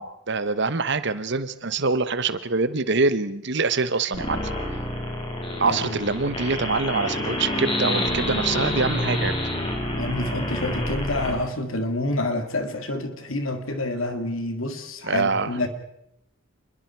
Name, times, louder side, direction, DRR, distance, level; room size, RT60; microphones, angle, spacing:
voice 1, 0.0-4.5 5.6-9.3 15.0-15.5, right 4 dB, 55° right, 13 dB, 1.1 m, -25 dB
sound 1, 4.1-11.3, left 1 dB, 25° left, 4.4 m, -28 dB
voice 2, 5.6-6.0 9.9-15.7, left 2 dB, 75° left, 7 dB, 2.7 m, -28 dB
27.5 x 21.5 x 4.7 m, 0.80 s
head